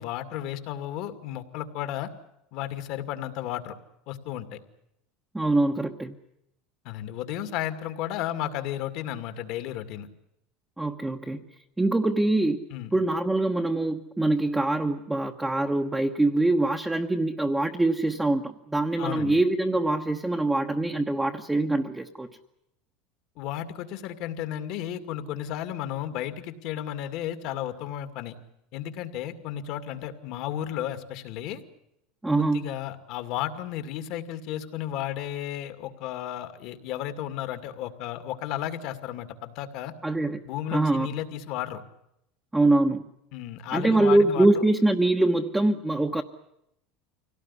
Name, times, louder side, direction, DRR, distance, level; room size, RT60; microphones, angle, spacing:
voice 1, 0.0-2.1 2.5-3.7 4.1-4.6 6.8-10.1 12.7-12.9 19.0-19.4 23.4-28.4 28.7-31.6 32.4-39.9 40.4-41.8 43.3-44.6, left 11 dB, 60° left, 9 dB, 2.3 m, -33 dB
voice 2, 5.3-6.1 10.8-11.4 11.8-12.6 12.9-22.3 32.2-32.6 40.0-40.4 40.7-41.1 42.5-43.1 43.7-46.2, right 2 dB, 10° right, 2 dB, 1.1 m, -24 dB
24.5 x 17.5 x 9.9 m, 0.80 s
supercardioid pair, 130°, 0 cm